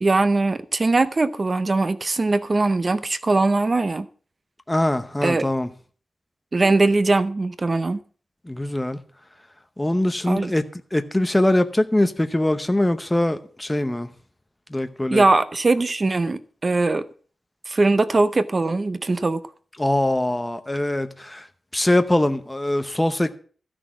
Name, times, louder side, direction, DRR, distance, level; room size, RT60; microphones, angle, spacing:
voice 1, 0.0-4.1 5.2-5.4 6.5-8.0 10.3-10.5 15.1-17.1 17.7-19.4, right 3 dB, 30° right, 0.6 m, -21 dB
voice 2, 4.7-5.7 8.4-9.0 9.8-10.6 10.9-14.1 14.7-15.2 19.8-21.5 21.7-23.3, left 1 dB, 10° left, 0.8 m, -22 dB
13.0 x 6.2 x 7.3 m
wide cardioid pair, 155°, 0 cm